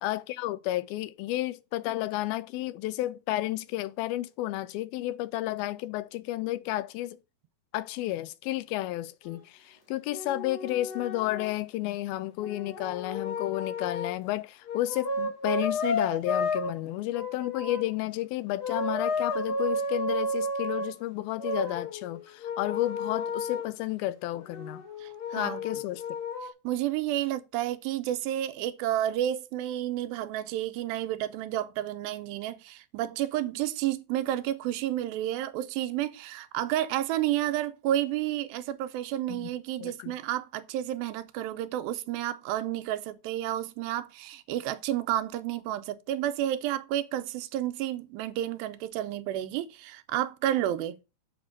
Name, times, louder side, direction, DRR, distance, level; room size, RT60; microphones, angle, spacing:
voice 1, 0.0-7.2 7.7-24.8 25.3-26.0 39.3-39.5 39.8-40.1, left 16 dB, 85° left, 2.5 m, -32 dB
sound 1, 9.2-9.4 10.1-11.5 12.4-14.2 14.7-16.7 17.1-17.9 18.6-20.9 21.4-23.7 24.5-26.5, left 2 dB, 40° left, 1.6 m, -32 dB
voice 2, 25.0-25.6 26.6-51.0, right 12 dB, 90° right, 2.5 m, -31 dB
7.6 x 4.4 x 6.5 m
omnidirectional pair, 4.2 m